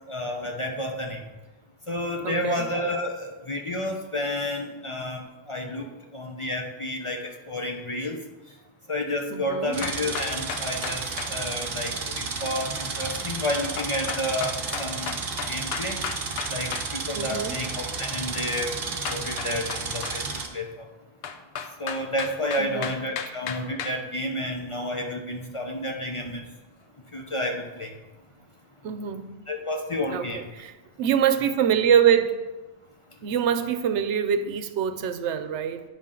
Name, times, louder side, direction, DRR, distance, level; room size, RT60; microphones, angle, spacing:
voice 1, 0.1-1.2 1.9-5.9 6.1-8.2 8.9-15.1 15.5-16.0 16.5-18.7 19.1-20.2 20.5-20.9 21.8-26.4 27.1-27.9 29.5-30.4, left 1 dB, 35° left, 2 dB, 0.6 m, -30 dB
voice 2, 2.2-2.7 9.3-9.8 17.2-17.6 22.6-22.9 23.2-23.3 28.8-29.3 30.1-30.7 31.0-32.4 33.2-35.8, right 8 dB, 90° right, 10 dB, 0.9 m, -24 dB
sound 1, 9.7-20.5, right 4 dB, 55° right, 1.0 m, -32 dB
sound 2, 9.8-11.3 13.8-16.9 19.0-20.2 21.2-24.0, left 7 dB, 65° left, 0.8 m, -34 dB
9.0 x 5.7 x 3.7 m, 1.2 s
omnidirectional pair, 1.1 m